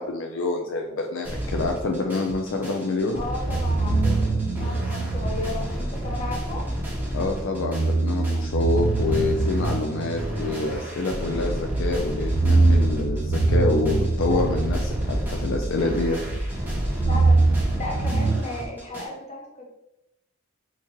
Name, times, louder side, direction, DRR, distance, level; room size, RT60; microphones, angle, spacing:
voice 1, 0.0-3.2 7.1-16.2, left 3 dB, 65° left, 2 dB, 0.4 m, -27 dB
sound 1, 1.2-19.0, equal, 10° right, 0.8 m, -32 dB
voice 2, 3.1-6.6 14.3-14.5 17.1-19.7, left 2 dB, 35° left, -1 dB, 0.7 m, -35 dB
sound 2, 3.5-6.4 7.5-11.4 12.1-16.1 16.4-18.4, right 3 dB, 55° right, 0.4 m, -24 dB
sound 3, 9.3-17.9, right 1 dB, 80° right, 0.8 m, -32 dB
3.5 x 2.8 x 2.9 m, 0.89 s
head